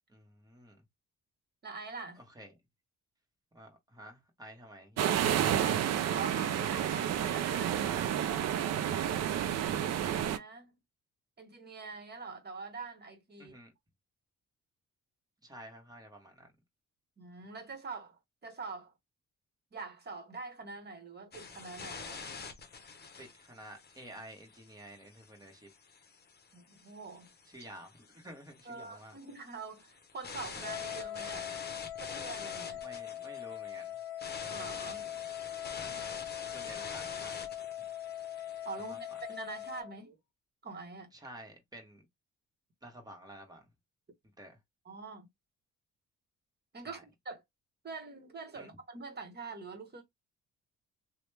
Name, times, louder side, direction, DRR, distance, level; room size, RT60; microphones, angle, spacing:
voice 1, 0.1-0.8 2.2-2.5 3.5-5.1 13.4-13.7 15.4-16.5 23.2-25.7 27.5-29.1 32.8-33.9 35.8-36.2 36.5-37.4 38.9-39.0 41.1-42.0 42.8-43.6 44.4-44.6 46.8-47.0 48.5-48.7, right 1 dB, 10° right, 1.3 m, -51 dB
voice 2, 1.6-2.2 6.1-9.6 10.0-10.7 11.4-13.6 17.2-18.9 19.7-22.4 26.5-27.3 28.6-31.5 32.0-32.8 34.5-35.2 38.6-40.2 40.6-41.1 44.8-45.3 46.7-47.4 47.8-50.0, right 4 dB, 35° right, 1.2 m, -45 dB
sound 1, 5.0-10.4, right 10 dB, 60° right, 0.5 m, -30 dB
sound 2, 21.3-39.8, left 5 dB, 35° left, 0.8 m, -47 dB
Wind instrument woodwind instrument, 30.6-40.0, left 12 dB, 90° left, 0.6 m, -41 dB
3.0 x 2.2 x 3.2 m
cardioid pair, 90°, 30 cm